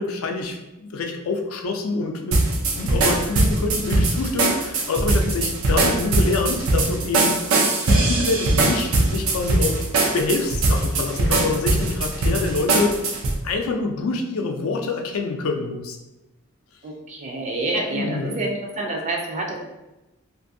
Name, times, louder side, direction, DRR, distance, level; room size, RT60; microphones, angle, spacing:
voice 1, 0.0-2.4 2.8-7.3 7.9-9.8 10.1-13.2 13.4-16.0 17.9-18.4, left 3 dB, 90° left, 3 dB, 0.4 m, -26 dB
sound 1, 2.3-13.4, right 2 dB, 85° right, 0.5 m, -21 dB
voice 2, 16.8-19.6, right 2 dB, 35° right, 0 dB, 0.4 m, -28 dB
2.6 x 2.5 x 2.5 m, 0.99 s
head